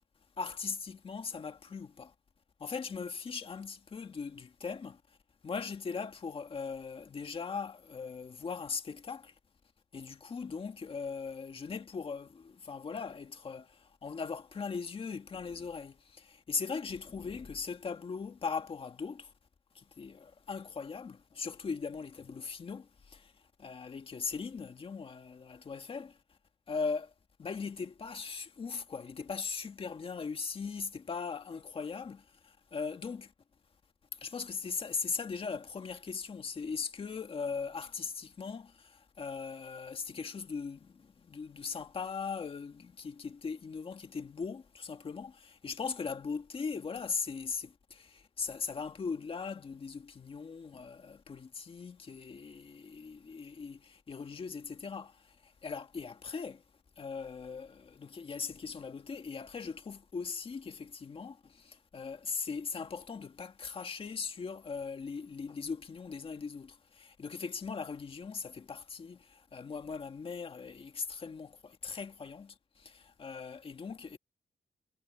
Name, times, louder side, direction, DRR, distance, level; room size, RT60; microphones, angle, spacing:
voice 1, 0.4-2.1 2.6-5.0 5.4-9.3 9.9-19.3 19.8-23.3 23.6-26.2 26.7-27.1 27.4-33.3 34.1-56.6 57.0-74.2, left 5 dB, 35° left, 1.8 m, -39 dB
wide cardioid pair, 145°, 16 cm